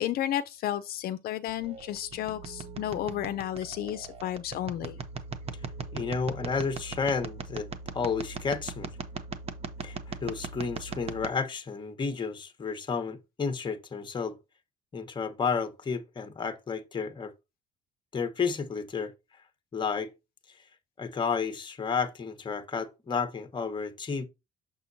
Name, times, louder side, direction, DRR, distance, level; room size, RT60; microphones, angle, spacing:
voice 1, 0.0-5.0, left 12 dB, 65° left, 0.5 m, -32 dB
sound 1, 1.5-11.3, right 4 dB, 35° right, 1.0 m, -39 dB
voice 2, 5.9-7.7 7.9-8.9 9.8-14.4 14.9-17.3 18.1-19.1 19.7-20.1 21.0-24.3, left 5 dB, 25° left, 1.1 m, -31 dB
6.9 x 6.0 x 2.7 m
cardioid pair, 110°, 17 cm